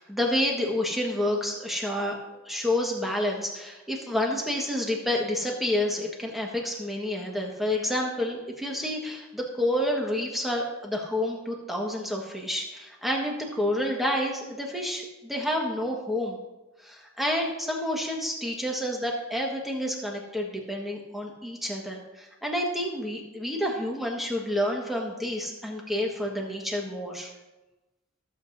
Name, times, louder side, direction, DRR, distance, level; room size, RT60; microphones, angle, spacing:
voice 1, 0.0-2.2 2.4-16.4 16.8-27.3, left 1 dB, ahead, -1 dB, 1.4 m, -29 dB
15.0 x 7.7 x 2.7 m, 1.1 s
head